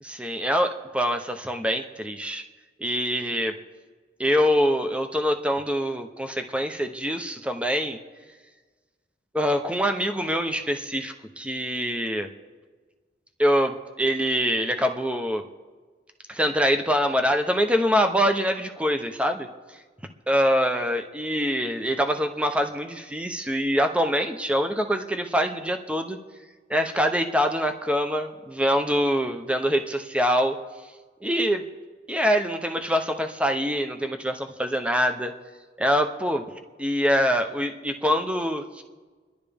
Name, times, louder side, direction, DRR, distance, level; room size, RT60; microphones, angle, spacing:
voice 1, 0.0-2.4 2.8-3.5 4.2-8.0 9.3-12.3 13.4-15.4 16.3-19.5 20.3-26.2 26.7-30.6 31.2-31.7 32.1-35.3 35.8-36.4 36.8-38.8, equal, 5° right, 6 dB, 0.8 m, -24 dB
27.5 x 11.0 x 3.5 m, 1.4 s
head